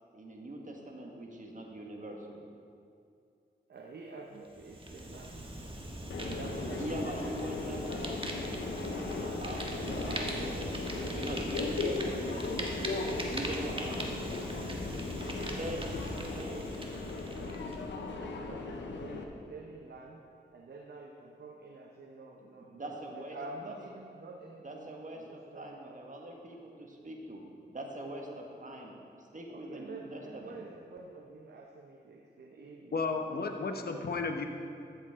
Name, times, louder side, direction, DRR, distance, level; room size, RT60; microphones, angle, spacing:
voice 1, 0.1-2.4 6.2-9.8 10.2-12.9 13.3-14.8 15.2-15.3 15.6-15.9 16.3-17.6 22.7-23.4 23.6-23.8 24.6-27.4 27.7-30.6, right 1 dB, 45° right, 0 dB, 1.7 m, -43 dB
voice 2, 3.7-7.4 9.3-9.5 9.9-11.2 13.8-14.0 15.0-16.7 18.2-20.3 20.5-26.0 29.5-33.9, right 3 dB, 65° right, 1 dB, 0.8 m, -48 dB
Fire, 4.5-17.8, right 1 dB, 30° right, 1.4 m, -40 dB
Subway metro underground, 6.1-19.2, left 3 dB, 90° left, 0.8 m, -37 dB
voice 3, 32.9-34.5, left 4 dB, 60° left, 4 dB, 1.0 m, -33 dB
13.5 x 7.3 x 3.7 m, 2.4 s
cardioid pair, 50°, 18 cm